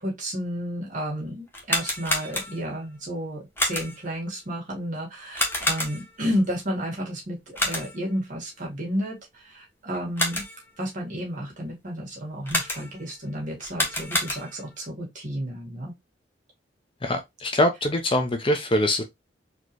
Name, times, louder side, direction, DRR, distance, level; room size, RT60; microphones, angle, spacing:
voice 1, 0.0-10.4 10.8-15.9, equal, 45° right, 1.8 m, -32 dB
sound 1, 1.5-2.8 3.6-4.1 5.3-6.2 7.5-8.1 9.9-10.7 12.5-13.1 13.6-14.7, left 1 dB, 15° left, 1.2 m, -28 dB
voice 2, 17.0-19.0, left 1 dB, 30° left, 0.7 m, -23 dB
4.3 x 3.0 x 3.1 m
head